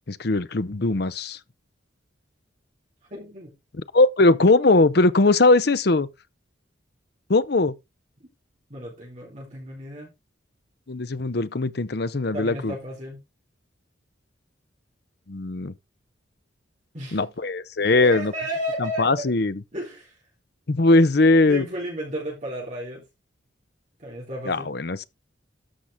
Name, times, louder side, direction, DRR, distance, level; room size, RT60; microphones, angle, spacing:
voice 1, 0.1-1.4 3.9-6.1 7.3-7.7 10.9-12.7 15.3-15.7 17.1-18.3 18.8-19.6 20.7-21.7 24.5-25.0, left 2 dB, 55° left, 0.7 m, -20 dB
voice 2, 3.1-3.5 8.7-10.1 12.3-13.2 16.9-17.2 18.0-19.3 19.7-20.2 21.5-23.0 24.0-24.7, equal, 40° right, 3.6 m, -33 dB
13.0 x 5.9 x 3.6 m
head